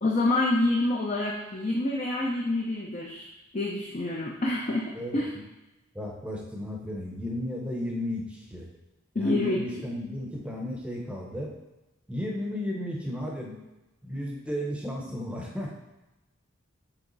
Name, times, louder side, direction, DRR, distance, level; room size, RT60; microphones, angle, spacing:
voice 1, 0.0-3.3 3.5-5.3 9.2-9.6, left 2 dB, 35° left, -2 dB, 0.5 m, -27 dB
voice 2, 4.9-5.4 5.9-8.7 9.1-11.5 12.1-13.6 14.0-15.7, left 1 dB, 5° right, -1 dB, 0.8 m, -34 dB
7.0 x 3.5 x 3.9 m, 1.0 s
head